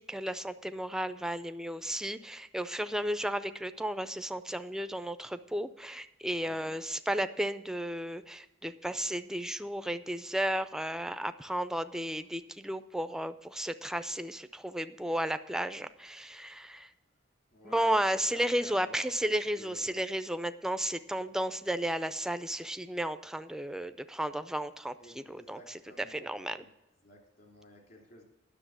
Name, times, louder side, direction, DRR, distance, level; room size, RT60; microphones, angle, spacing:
voice 1, 0.0-16.9 17.6-26.7, right 1 dB, 5° right, 11 dB, 0.4 m, -33 dB
voice 2, 6.4-6.7 17.5-17.9 18.2-20.1 25.0-26.7 27.0-28.2, equal, 50° left, 0 dB, 2.9 m, -53 dB
10.0 x 6.6 x 7.2 m, 0.92 s
head